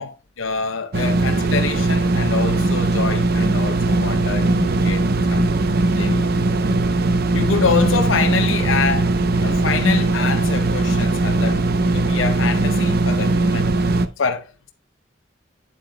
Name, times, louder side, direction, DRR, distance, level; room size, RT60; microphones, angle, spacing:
voice 1, 0.0-5.5 6.0-6.5 7.3-9.1 9.4-13.7 14.2-14.7, left 5 dB, 90° left, 0.7 m, -25 dB
sound 1, 0.9-14.1, right 2 dB, 50° right, 0.6 m, -19 dB
9.0 x 7.6 x 2.2 m
head